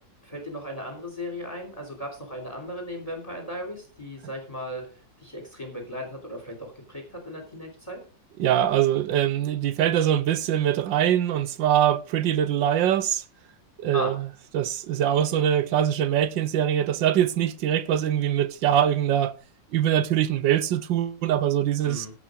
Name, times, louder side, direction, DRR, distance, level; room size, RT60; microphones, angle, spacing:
voice 1, 0.2-4.8 5.2-8.0 13.9-14.1 21.8-22.1, equal, 20° left, 3.2 m, -36 dB
voice 2, 8.4-13.2 13.8-14.3 14.5-19.3 19.7-22.1, right 10 dB, 85° right, 1.5 m, -23 dB
16.0 x 5.7 x 5.1 m
omnidirectional pair, 2.0 m